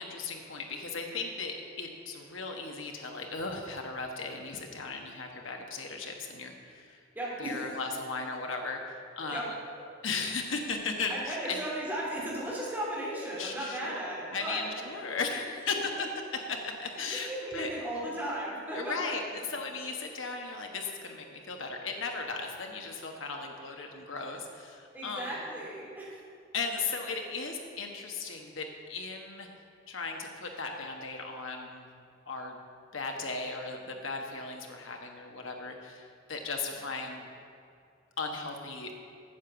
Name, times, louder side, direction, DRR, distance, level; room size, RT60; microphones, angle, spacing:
voice 1, 0.0-7.0 7.4-9.5 10.0-11.6 13.4-14.0 14.3-16.1 16.5-17.7 18.7-25.3 26.5-29.5 29.9-31.9 32.3-32.6 32.9-37.3 38.2-38.9, left 4 dB, 70° left, 2 dB, 1.4 m, -36 dB
voice 2, 7.1-7.8 9.3-9.5 11.1-15.1 16.8-19.1 24.9-26.2, right 1 dB, 10° right, -6 dB, 3.1 m, -36 dB
9.2 x 7.9 x 7.0 m, 2.4 s
head